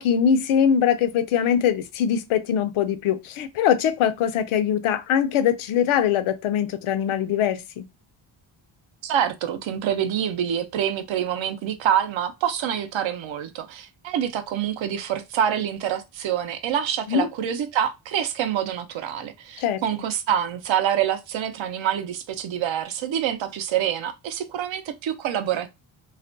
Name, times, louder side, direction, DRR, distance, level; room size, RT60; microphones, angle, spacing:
voice 1, 0.0-7.9 17.1-17.3 19.6-19.8, left 8 dB, 80° left, 0.6 m, -22 dB
voice 2, 9.0-25.7, right 9 dB, 65° right, 0.6 m, -26 dB
2.4 x 2.1 x 2.5 m
cardioid pair, 105°, 49 cm